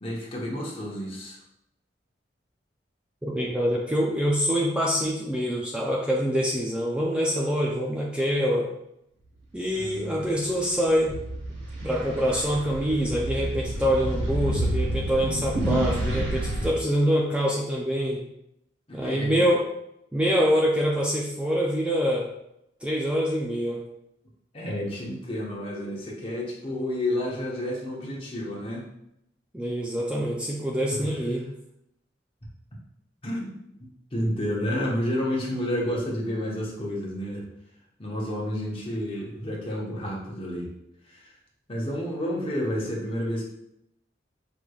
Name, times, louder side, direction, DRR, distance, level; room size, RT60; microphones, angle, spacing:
voice 1, 0.0-1.4 9.8-10.2 16.5-16.6 18.9-19.4 24.5-28.8 30.9-31.1 33.2-33.5 33.8-37.5 38.0-40.7 41.1-41.3 41.7-43.4, left 1 dB, 30° left, -3 dB, 1.0 m, -30 dB
voice 2, 3.2-8.7 9.5-11.1 11.8-18.2 18.9-19.7 20.1-22.3 22.8-23.8 29.5-31.5, equal, 5° right, -3 dB, 0.4 m, -25 dB
sound 1, 10.2-16.7, right 1 dB, 80° right, 1.4 m, -29 dB
5.4 x 3.2 x 2.3 m, 0.79 s
head